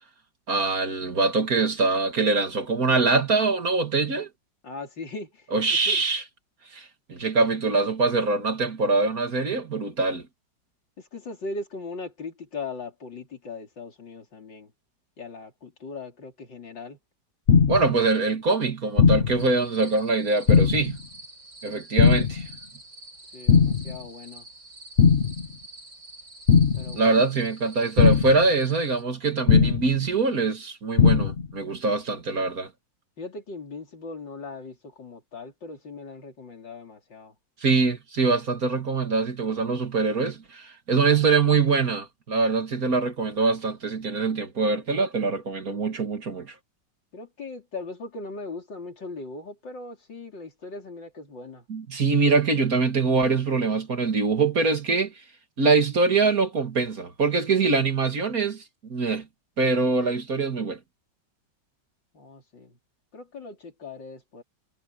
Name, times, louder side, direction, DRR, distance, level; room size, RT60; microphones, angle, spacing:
voice 1, 0.5-4.3 5.5-6.2 6.7-10.3 17.7-21.0 21.6-22.5 26.9-32.7 37.6-46.5 51.7-55.1 55.6-58.6 58.9-59.3 59.6-60.8, right 4 dB, 50° right, 2.5 m, -23 dB
voice 2, 4.6-5.3 5.9-6.0 11.1-14.7 15.2-17.0 23.3-24.4 26.7-27.3 33.2-37.3 47.1-51.6 62.1-62.7 63.1-64.4, left 3 dB, 85° left, 4.5 m, -39 dB
sound 1, 17.5-18.0 19.0-19.5 20.5-21.0 22.0-22.5 23.5-24.0 25.0-25.5 26.5-27.0 28.0-28.5 29.5-30.0 31.0-31.5, left 6 dB, 40° left, 1.1 m, -18 dB
sound 2, 19.4-29.0, right 2 dB, 85° right, 7.3 m, -47 dB
omnidirectional pair, 1.9 m